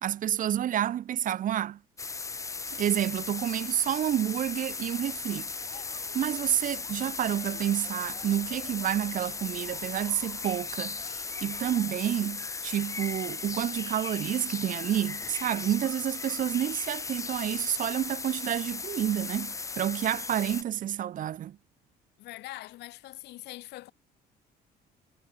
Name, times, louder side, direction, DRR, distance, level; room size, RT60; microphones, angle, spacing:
voice 1, 0.0-1.8 2.7-5.5 6.1-21.6, right 11 dB, 50° right, 0.9 m, -29 dB
sound 1, 2.0-20.6, left 4 dB, 20° left, 0.7 m, -37 dB
sound 2, 5.6-12.2, left 7 dB, 40° left, 2.6 m, -53 dB
voice 2, 22.2-23.9, left 17 dB, 80° left, 3.4 m, -43 dB
cardioid pair, 110°, 17 cm